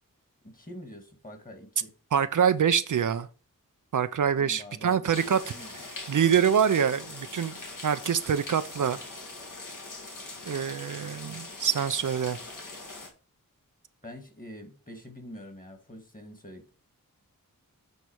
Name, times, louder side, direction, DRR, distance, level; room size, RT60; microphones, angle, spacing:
voice 1, 0.4-1.9 4.4-5.9 14.0-16.7, left 1 dB, 25° left, 1.9 m, -46 dB
voice 2, 2.1-3.3 3.9-5.4 6.1-7.5 7.8-9.0 10.5-12.4, right 8 dB, 65° right, 0.5 m, -25 dB
sound 1, 5.1-13.1, left 2 dB, 65° left, 2.0 m, -42 dB
8.1 x 4.2 x 4.6 m
wide cardioid pair, 65°, 33 cm